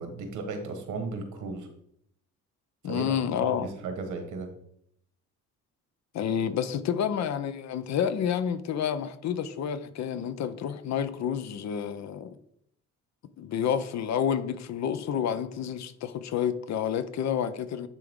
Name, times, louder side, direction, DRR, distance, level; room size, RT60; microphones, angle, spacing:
voice 1, 0.0-1.7 2.8-3.0 3.4-4.5, right 4 dB, 80° right, 1.4 m, -35 dB
voice 2, 2.8-3.7 6.1-12.3 13.4-17.9, left 8 dB, 65° left, 0.6 m, -29 dB
10.0 x 3.4 x 3.7 m
cardioid pair, 90°, 30 cm